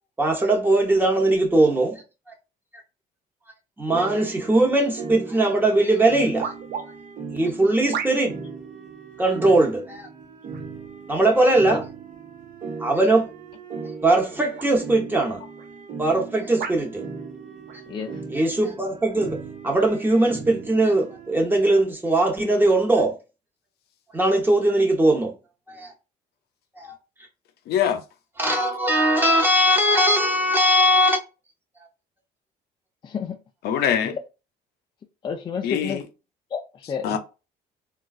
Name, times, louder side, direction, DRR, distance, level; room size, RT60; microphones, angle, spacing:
voice 1, 0.2-2.0 3.8-6.5 7.3-8.4 9.2-10.1 11.1-11.8 12.8-13.3 14.0-15.4 16.0-17.0 18.3-19.4 19.6-23.2 24.1-25.3 25.7-25.9 26.8-26.9 28.4-31.2, right 1 dB, 10° right, 0.9 m, -20 dB
sound 1, 3.9-21.3, right 5 dB, 50° right, 1.0 m, -38 dB
sound 2, 6.4-6.9 7.9-8.4 9.2-9.5 10.5-10.9 11.7-11.8 13.8-14.0 14.6-14.7 15.6-15.7 16.6-16.9 17.7-17.8, right 7 dB, 70° right, 0.5 m, -33 dB
voice 2, 17.9-18.2 33.0-33.4 34.0-34.1 35.2-36.0 36.5-37.2, left 6 dB, 30° left, 0.4 m, -31 dB
voice 3, 27.7-28.0 33.6-34.2 35.6-36.0 37.0-37.2, left 9 dB, 70° left, 0.6 m, -23 dB
3.7 x 2.3 x 2.4 m
cardioid pair, 110°, 17 cm